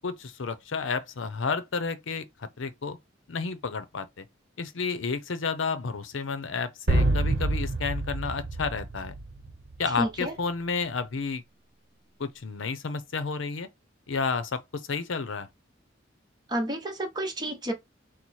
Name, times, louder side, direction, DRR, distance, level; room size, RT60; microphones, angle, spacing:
voice 1, 0.0-3.0 3.3-4.2 4.6-9.1 9.8-11.4 12.2-13.7 14.1-15.5, left 4 dB, 85° left, 0.6 m, -31 dB
sound 1, 6.9-9.7, right 2 dB, 65° right, 0.9 m, -27 dB
voice 2, 10.0-10.3 16.5-17.7, right 1 dB, 20° right, 1.0 m, -30 dB
4.1 x 2.1 x 4.6 m
head